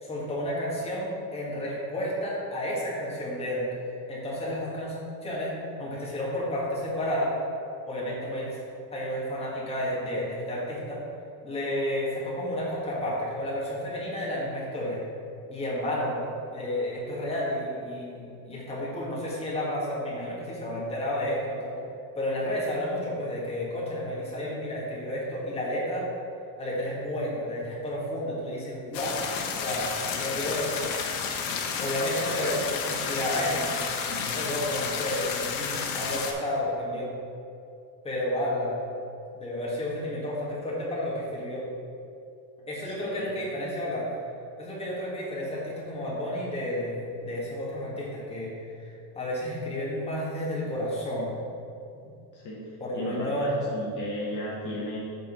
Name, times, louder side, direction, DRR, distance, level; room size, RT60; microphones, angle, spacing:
voice 1, 0.0-3.7 4.1-4.9 5.2-5.5 5.8-7.3 7.9-8.6 8.9-11.0 11.4-15.0 15.5-16.2 16.5-21.7 22.1-26.0 26.6-29.2 29.6-30.7 31.8-37.1 38.0-38.8 39.3-41.6 42.7-44.1 44.6-48.5 48.8-48.9 49.1-51.4 52.8-53.5, left 1 dB, 15° left, -6 dB, 1.7 m, -31 dB
sound 1, 28.9-36.3, left 6 dB, 75° left, 1.0 m, -31 dB
voice 2, 42.9-43.3 52.3-52.6 52.9-55.0, left 1 dB, 40° left, -6 dB, 1.3 m, -35 dB
7.5 x 3.9 x 5.2 m, 2.5 s
cardioid pair, 155°, 46 cm